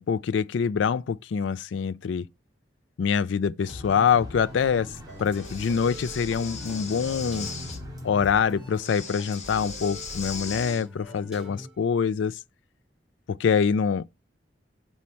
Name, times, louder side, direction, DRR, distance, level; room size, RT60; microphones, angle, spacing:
voice 1, 0.0-2.3 3.0-7.5 8.0-12.4 13.3-14.0, left 6 dB, 80° left, 0.4 m, -25 dB
sound 1, 3.6-8.8, equal, 20° right, 2.1 m, -44 dB
sound 2, 3.7-11.8, left 1 dB, 5° right, 3.8 m, -42 dB
Breathing, 5.3-7.8 8.7-10.9, left 5 dB, 40° left, 1.4 m, -39 dB
6.3 x 4.3 x 5.6 m
head